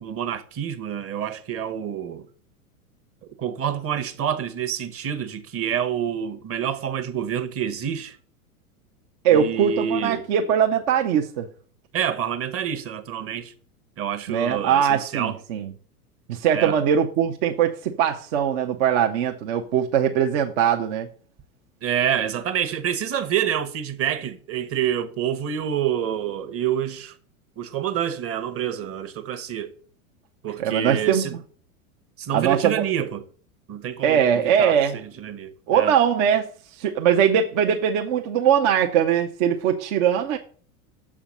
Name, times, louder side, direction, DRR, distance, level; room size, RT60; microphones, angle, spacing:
voice 1, 0.0-2.2 3.4-8.2 9.3-10.2 11.9-13.5 14.0-15.4 16.5-16.7 21.8-27.1 27.6-29.7 30.4-31.4 32.2-33.2 33.7-35.9, right 9 dB, 30° right, 1.3 m, -27 dB
voice 2, 9.2-11.5 14.3-15.7 16.3-21.1 30.6-31.3 32.3-32.8 34.0-35.0 35.7-40.4, right 8 dB, 55° right, 1.1 m, -21 dB
7.4 x 5.0 x 7.2 m
hypercardioid pair, 100°, 43 cm